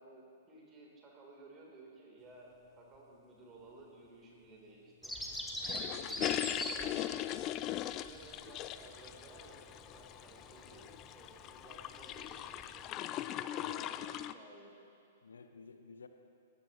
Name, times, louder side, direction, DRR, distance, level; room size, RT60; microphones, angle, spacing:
voice 1, 0.0-5.1 5.8-6.0 6.5-6.9 7.2-12.9 13.4-14.8, right 2 dB, 25° right, -2 dB, 3.4 m, -56 dB
Bird vocalization bird call bird song, 5.0-12.9, equal, ahead, 1.2 m, -44 dB
sound 1, 5.6-14.3, left 13 dB, 30° left, 0.4 m, -40 dB
voice 2, 5.8-6.5 15.2-16.1, left 4 dB, 70° left, 8 dB, 0.8 m, -52 dB
19.0 x 15.0 x 3.0 m, 2.5 s
figure-of-eight pair, 110°, 0 cm